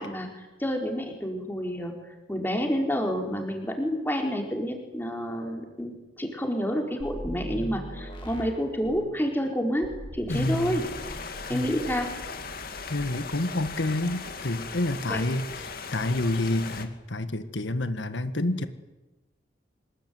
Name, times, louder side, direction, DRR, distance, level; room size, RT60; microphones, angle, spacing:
voice 1, 0.0-1.9 2.3-5.9 6.2-9.9 10.1-10.9 11.5-12.1 15.1-15.2, equal, 10° left, 2 dB, 4.5 m, -29 dB
sound 1, 7.0-9.1 9.8-11.4 11.6-12.0, equal, 25° left, 7.2 m, -39 dB
voice 2, 10.3-10.8 11.5-11.7 12.9-18.7, left 2 dB, 80° left, 10 dB, 1.6 m, -28 dB
sound 2, 10.3-16.9, left 4 dB, 50° left, 2.5 m, -38 dB
25.0 x 21.0 x 9.6 m, 1.1 s
head